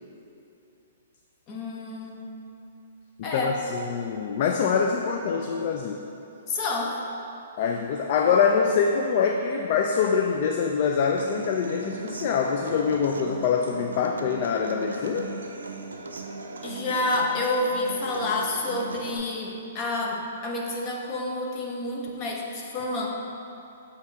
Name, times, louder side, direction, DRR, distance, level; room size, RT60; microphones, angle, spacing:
voice 1, 1.5-2.3 3.2-3.5 6.5-7.0 16.6-23.1, left 2 dB, 35° left, 0 dB, 0.9 m, -29 dB
voice 2, 3.2-6.0 7.6-15.3, left 6 dB, 50° left, 3 dB, 0.3 m, -24 dB
Human voice / Acoustic guitar, 11.2-19.2, right 3 dB, 85° right, 0.5 m, -38 dB
7.8 x 2.9 x 4.8 m, 2.8 s
hypercardioid pair, 130°, 0 cm